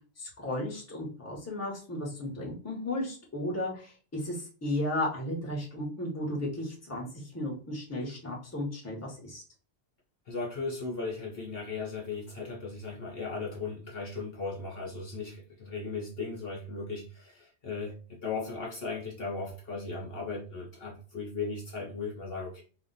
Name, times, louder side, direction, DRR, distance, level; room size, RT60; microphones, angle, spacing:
voice 1, 0.2-9.4, left 1 dB, 15° left, -2 dB, 0.9 m, -34 dB
voice 2, 10.3-22.6, left 4 dB, 60° left, -1 dB, 0.9 m, -37 dB
2.5 x 2.1 x 3.8 m, 0.38 s
omnidirectional pair, 1.2 m